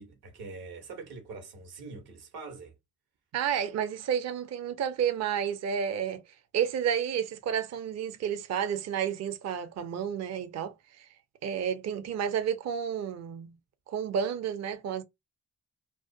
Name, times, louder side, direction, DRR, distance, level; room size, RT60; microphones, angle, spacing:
voice 1, 0.0-2.7, right 4 dB, 75° right, 1.1 m, -44 dB
voice 2, 3.3-6.2 6.5-11.1 11.4-13.5 13.9-15.0, right 8 dB, 45° right, 0.5 m, -31 dB
2.3 x 2.2 x 2.6 m
hypercardioid pair, 45°, 38 cm